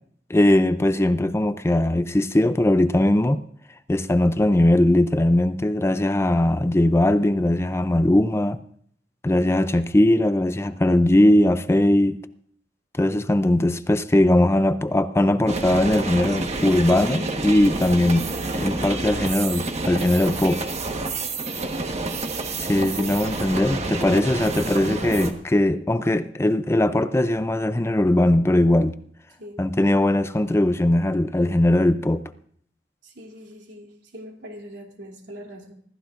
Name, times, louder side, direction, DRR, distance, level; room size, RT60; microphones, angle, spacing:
voice 1, 0.3-3.4 3.9-8.6 9.2-12.2 13.0-18.3 18.5-20.7 22.6-29.0 29.6-32.2, left 1 dB, 15° left, 0.5 m, -20 dB
sound 1, 15.5-25.3, right 3 dB, 40° right, 1.3 m, -29 dB
voice 2, 24.5-25.0 29.4-29.6 33.0-35.7, equal, 85° right, 3.0 m, -41 dB
25.5 x 14.0 x 2.5 m
head